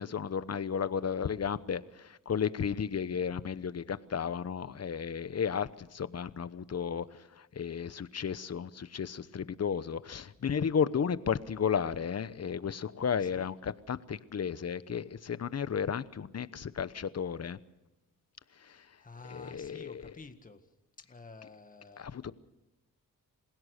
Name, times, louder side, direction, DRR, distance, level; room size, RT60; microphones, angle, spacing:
voice 1, 0.0-17.6 18.6-18.8 19.2-20.1 22.0-22.3, left 7 dB, 50° left, 15 dB, 1.0 m, -33 dB
voice 2, 18.6-20.6 21.1-22.1, left 3 dB, 25° left, 7 dB, 1.8 m, -50 dB
28.5 x 16.5 x 6.6 m, 0.94 s
cardioid pair, 75°, 34 cm